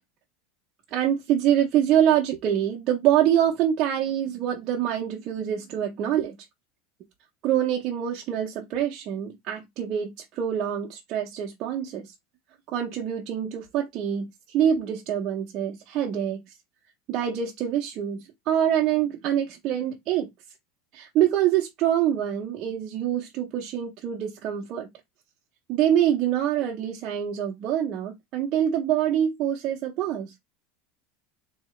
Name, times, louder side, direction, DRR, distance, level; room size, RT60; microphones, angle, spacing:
voice 1, 0.9-6.4 7.4-12.1 12.7-16.5 17.1-20.3 20.9-24.9 25.7-30.4, right 10 dB, 35° right, 0.6 m, -25 dB
3.8 x 2.8 x 3.1 m
supercardioid pair, 165°, 0 cm